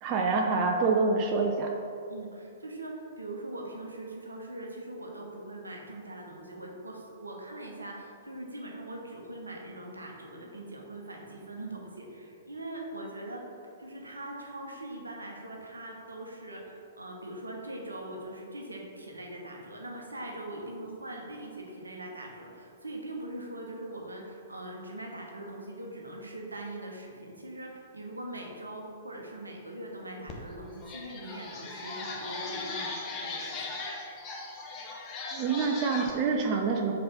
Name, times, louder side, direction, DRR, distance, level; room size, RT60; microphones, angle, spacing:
voice 1, 0.0-1.7 35.3-36.9, right 4 dB, 35° right, 2 dB, 0.5 m, -26 dB
voice 2, 2.1-13.4 13.8-33.8, right 1 dB, 80° right, 0 dB, 1.0 m, -41 dB
sound 1, 30.3-30.4 30.8-36.1, left 3 dB, 25° left, 1.0 m, -38 dB
5.3 x 3.9 x 5.6 m, 2.6 s
figure-of-eight pair, 110°, 0 cm